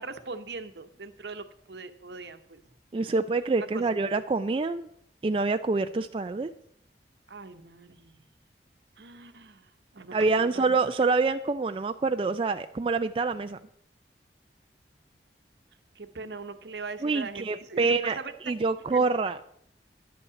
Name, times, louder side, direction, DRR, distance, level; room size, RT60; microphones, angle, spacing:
voice 1, 0.0-2.6 3.6-4.1 7.3-8.3 9.0-10.8 15.9-18.3 18.9-19.0, right 4 dB, 75° right, 9 dB, 0.9 m, -41 dB
voice 2, 2.9-4.9 5.2-6.5 10.1-13.6 17.0-18.2 18.5-19.4, right 3 dB, 30° right, 9 dB, 0.3 m, -26 dB
10.5 x 5.6 x 8.2 m, 0.71 s
head